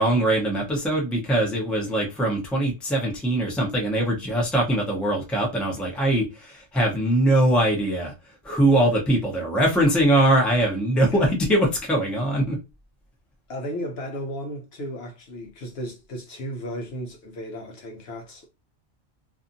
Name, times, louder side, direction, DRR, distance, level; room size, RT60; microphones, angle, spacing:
voice 1, 0.0-8.1 8.4-12.6, right 1 dB, ahead, 0.6 m, -22 dB
voice 2, 10.9-11.3 13.5-18.5, equal, 60° left, 0.8 m, -35 dB
2.6 x 2.4 x 2.6 m
omnidirectional pair, 1.3 m